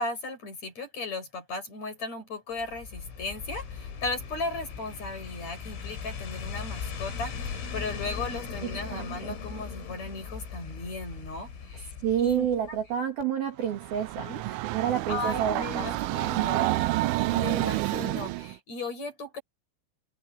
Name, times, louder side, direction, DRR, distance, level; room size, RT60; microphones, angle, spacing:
voice 1, 0.0-11.9 12.2-12.8 14.2-14.4 15.1-16.8 17.3-19.4, left 2 dB, 30° left, 8.8 m, -36 dB
sound 1, 2.6-12.9 13.2-13.3, left 6 dB, 80° left, 7.7 m, -39 dB
voice 2, 8.9-9.4 12.0-15.9 16.4-16.8, right 9 dB, 55° right, 3.7 m, -30 dB
Train, 13.6-18.5, right 18 dB, 80° right, 3.2 m, -29 dB
omnidirectional pair, 6.0 m